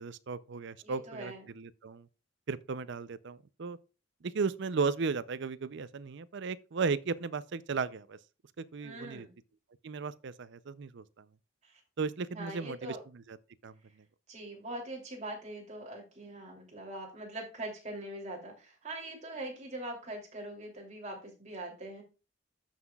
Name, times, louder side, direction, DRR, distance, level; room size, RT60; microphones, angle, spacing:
voice 1, 0.0-2.1 2.5-3.8 4.2-8.2 8.6-9.3 9.8-11.2 12.0-13.4 13.6-13.7, right 4 dB, 60° right, 0.5 m, -35 dB
voice 2, 0.8-1.4 8.8-9.3 11.6-11.8 12.3-13.0 14.3-22.0, right 1 dB, 35° right, 2.9 m, -42 dB
14.0 x 5.8 x 2.3 m
head